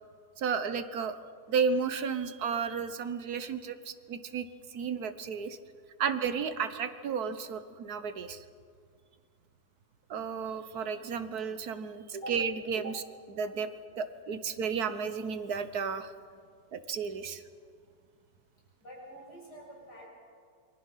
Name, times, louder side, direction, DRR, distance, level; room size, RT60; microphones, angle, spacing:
voice 1, 0.4-1.2 1.5-4.5 4.7-5.6 6.0-8.4 10.1-13.0 13.4-13.7 14.0-16.1 16.7-17.4, right 6 dB, 70° right, 11 dB, 1.6 m, -33 dB
voice 2, 18.8-20.1, equal, 85° left, -3 dB, 8.2 m, -48 dB
28.5 x 23.5 x 5.7 m, 2.2 s
omnidirectional pair, 1.7 m